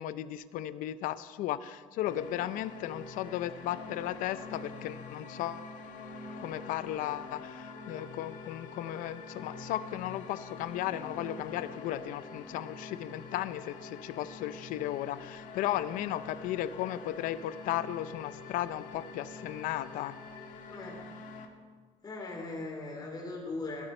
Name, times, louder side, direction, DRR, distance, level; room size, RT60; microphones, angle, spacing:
voice 1, 0.0-5.7 6.4-20.1, left 13 dB, 85° left, 14 dB, 0.6 m, -35 dB
sound 1, 2.1-21.5, left 4 dB, 70° left, 1.6 m, -45 dB
voice 2, 20.7-21.0 22.0-23.9, left 2 dB, 30° left, 0 dB, 2.9 m, -39 dB
18.0 x 12.5 x 4.4 m, 1.5 s
cardioid pair, 135°, 14 cm